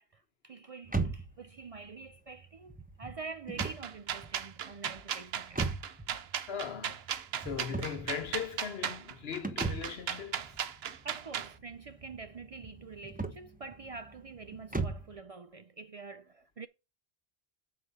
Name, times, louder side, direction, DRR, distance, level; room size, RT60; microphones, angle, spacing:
voice 1, 0.0-5.6 9.0-9.1 11.0-16.7, right 4 dB, 50° right, 0.4 m, -46 dB
sound 1, 0.8-15.2, right 3 dB, 10° right, 0.8 m, -40 dB
sound 2, 3.6-11.5, right 8 dB, 80° right, 1.0 m, -36 dB
voice 2, 6.5-7.0 7.4-10.6, left 7 dB, 75° left, 1.3 m, -39 dB
7.6 x 4.9 x 6.6 m
omnidirectional pair, 1.0 m